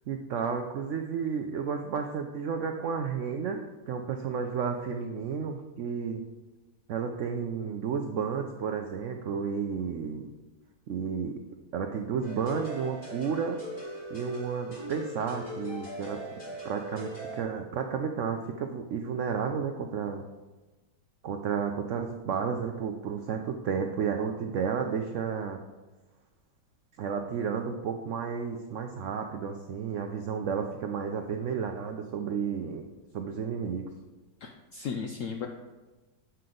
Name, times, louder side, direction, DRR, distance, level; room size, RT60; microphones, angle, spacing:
voice 1, 0.1-6.2 6.9-10.3 10.9-11.3 11.7-13.6 14.1-16.2 16.6-20.2 21.2-25.6 27.0-32.8 33.1-33.9, right 6 dB, 80° right, 5 dB, 0.6 m, -32 dB
sound 1, 12.2-17.4, equal, 30° left, 2.6 m, -40 dB
voice 2, 34.4-35.5, left 6 dB, 75° left, 4 dB, 0.7 m, -35 dB
7.7 x 5.6 x 3.8 m, 1.2 s
omnidirectional pair, 1.9 m